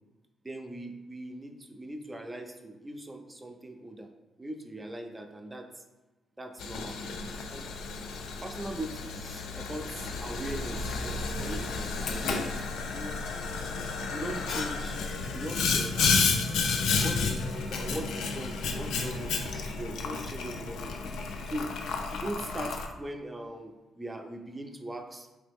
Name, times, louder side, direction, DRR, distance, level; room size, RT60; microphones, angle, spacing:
voice 1, 0.4-4.1 4.4-5.8 6.4-7.0 7.5-7.7 8.4-12.5 12.9-13.1 14.1-15.0 15.3-16.2 17.0-21.1 21.5-21.7 22.1-25.3, right 1 dB, 20° right, 5 dB, 0.4 m, -40 dB
Boiling, 6.6-22.9, left 4 dB, 80° left, 0.4 m, -31 dB
3.3 x 3.0 x 3.5 m, 1.1 s
cardioid pair, 75°, 0 cm